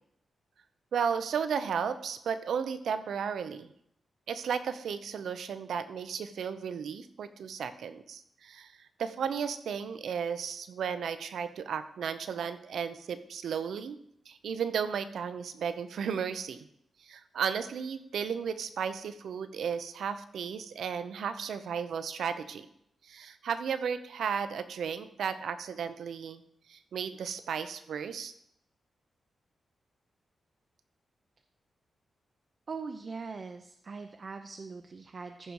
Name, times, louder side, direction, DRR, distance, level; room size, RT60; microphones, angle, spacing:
voice 1, 0.9-3.7 4.3-14.0 14.3-16.7 17.0-22.7 23.0-26.4 26.7-28.3, right 7 dB, 85° right, 11 dB, 0.7 m, -34 dB
voice 2, 32.7-35.5, right 4 dB, 40° right, 6 dB, 0.6 m, -41 dB
14.5 x 5.2 x 4.7 m, 0.72 s
wide cardioid pair, 150°, 0 cm